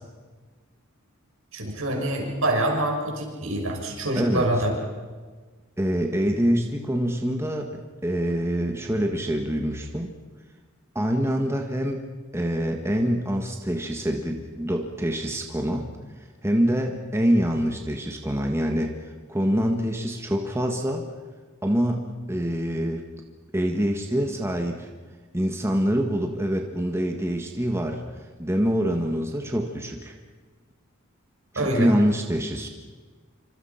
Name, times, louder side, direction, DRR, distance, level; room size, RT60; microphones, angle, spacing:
voice 1, 1.5-4.7 31.5-31.9, right 1 dB, 70° right, 1 dB, 6.6 m, -25 dB
voice 2, 4.1-4.5 5.8-10.1 10.9-12.0 12.3-15.9 16.2-21.0 21.6-23.0 23.5-24.9 25.3-30.2 31.5-32.7, equal, 15° right, 2 dB, 1.7 m, -25 dB
27.5 x 25.5 x 5.9 m, 1.4 s
head